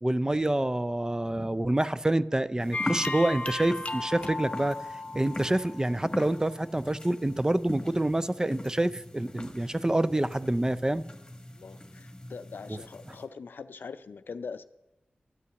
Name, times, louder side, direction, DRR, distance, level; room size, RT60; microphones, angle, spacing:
voice 1, 0.0-4.8 5.1-11.0 12.7-12.8, right 1 dB, 20° right, 14 dB, 0.4 m, -27 dB
sound 1, 2.6-13.3, left 1 dB, 25° left, 1.5 m, -42 dB
sound 2, 2.7-6.3, left 2 dB, 40° left, 0.8 m, -35 dB
voice 2, 11.6-14.6, left 5 dB, 80° left, 12 dB, 0.5 m, -42 dB
12.5 x 5.7 x 8.0 m, 0.98 s
cardioid pair, 45°, 3 cm